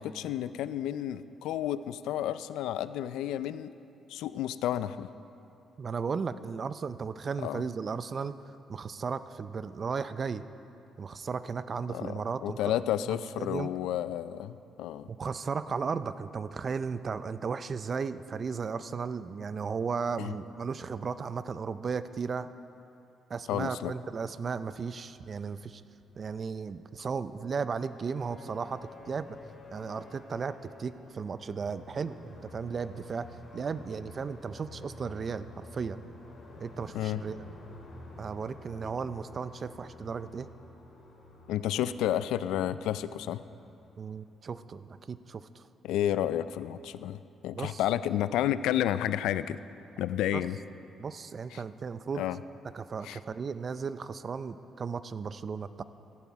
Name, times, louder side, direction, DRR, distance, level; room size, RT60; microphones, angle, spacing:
voice 1, 0.0-3.7 4.1-5.1 7.4-7.6 11.9-12.1 12.4-15.1 20.2-20.3 23.5-23.9 36.9-37.2 41.5-43.4 45.8-49.6 50.0-50.6 51.5-51.6 52.1-52.4 53.0-53.2, left 11 dB, 90° left, 14 dB, 0.3 m, -31 dB
voice 2, 5.8-8.3 8.7-10.4 11.0-13.7 15.1-22.5 23.3-25.8 26.2-29.4 29.7-36.0 36.6-37.4 38.2-40.5 44.0-45.6 47.5-47.8 50.3-50.4 51.0-52.2 52.7-55.8, right 5 dB, 45° right, 14 dB, 0.4 m, -35 dB
sound 1, 27.7-44.5, left 1 dB, 50° left, 2.9 m, -50 dB
14.0 x 10.5 x 4.7 m, 2.8 s
cardioid pair, 90°, 0 cm